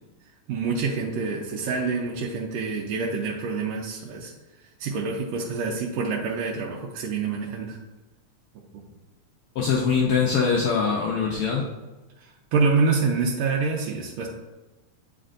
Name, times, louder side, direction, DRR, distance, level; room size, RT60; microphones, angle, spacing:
voice 1, 0.5-4.3 4.8-7.8 8.7-8.8 12.2-14.3, right 4 dB, 75° right, -2 dB, 1.7 m, -26 dB
voice 2, 9.5-11.6, left 5 dB, 85° left, -2 dB, 1.2 m, -23 dB
8.7 x 4.3 x 2.5 m, 1.1 s
omnidirectional pair, 3.3 m